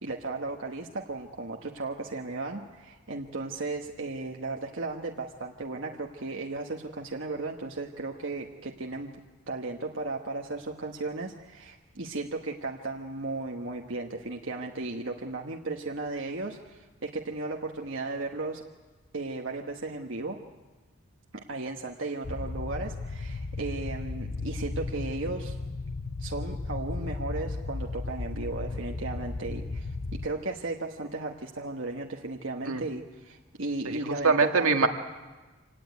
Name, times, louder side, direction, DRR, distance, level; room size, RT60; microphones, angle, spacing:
voice 1, 0.0-9.2 9.5-18.6 19.1-20.4 21.3-25.6 26.2-34.7, right 3 dB, 60° right, 1 dB, 1.3 m, -35 dB
sound 1, 22.2-30.3, left 3 dB, 45° left, 0.7 m, -35 dB
voice 2, 33.9-34.9, right 4 dB, 85° right, 5 dB, 1.8 m, -24 dB
26.0 x 18.0 x 9.4 m, 1.3 s
head